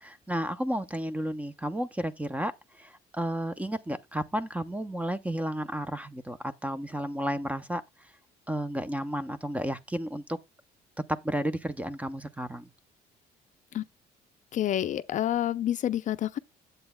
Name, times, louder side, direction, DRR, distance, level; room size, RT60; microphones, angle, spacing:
voice 1, 0.0-2.5 2.8-7.8 8.5-10.4 11.1-12.7, right 1 dB, 10° right, 0.6 m, -32 dB
voice 2, 14.5-16.4, left 11 dB, 50° left, 0.4 m, -28 dB
9.3 x 7.9 x 2.2 m
cardioid pair, 110°, 17 cm